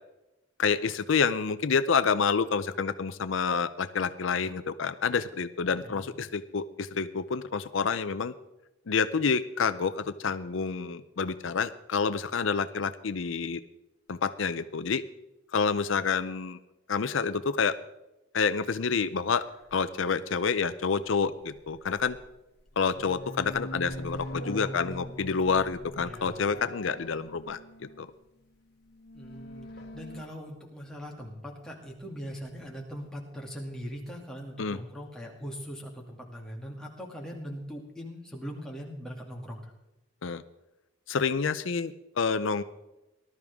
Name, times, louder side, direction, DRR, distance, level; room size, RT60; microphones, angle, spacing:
voice 1, 0.6-8.3 8.9-13.6 14.1-15.0 15.5-16.6 16.9-17.8 18.3-19.4 19.7-22.2 22.8-27.6 28.0-28.1 34.6-34.8 40.2-40.4 41.1-42.6, left 5 dB, 70° left, 12 dB, 0.6 m, -28 dB
voice 2, 5.6-6.1 26.0-26.6 29.1-39.7, equal, 5° left, -2 dB, 2.4 m, -41 dB
sound 1, 19.7-19.8 21.5-22.3 22.6-28.1 28.9-30.2, left 1 dB, 55° left, 1.6 m, -42 dB
19.0 x 12.5 x 3.6 m, 0.96 s
head